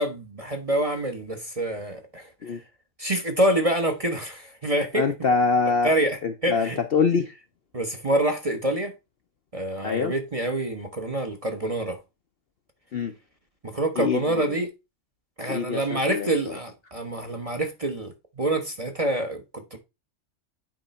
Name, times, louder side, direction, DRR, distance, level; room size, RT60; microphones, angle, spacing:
voice 1, 0.0-2.6 3.0-5.1 5.8-6.2 6.4-6.8 7.7-8.9 9.5-12.0 13.6-14.7 15.4-19.8, right 1 dB, 30° right, 0.8 m, -26 dB
voice 2, 4.9-5.9 6.2-7.3 9.8-10.1 12.9-13.1 14.0-14.6 15.5-16.6, left 5 dB, 55° left, 0.7 m, -25 dB
9.1 x 3.3 x 4.1 m
omnidirectional pair, 1.5 m